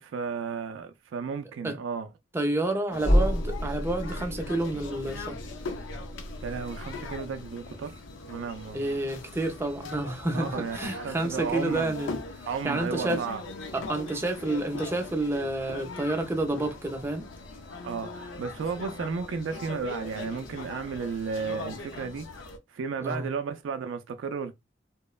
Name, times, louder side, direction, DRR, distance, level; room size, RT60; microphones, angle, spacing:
voice 1, 0.0-2.1 6.4-8.0 8.3-9.1 10.3-11.9 12.5-13.4 17.8-22.3 22.7-24.5, right 5 dB, 75° right, 0.3 m, -33 dB
voice 2, 2.3-5.4 8.7-12.2 12.6-13.3 13.7-17.3 23.0-23.3, right 2 dB, 15° right, 0.4 m, -29 dB
sound 1, 2.9-22.6, left 3 dB, 75° left, 0.5 m, -41 dB
sound 2, 3.0-7.7, equal, 30° left, 0.7 m, -30 dB
2.9 x 2.0 x 2.3 m
head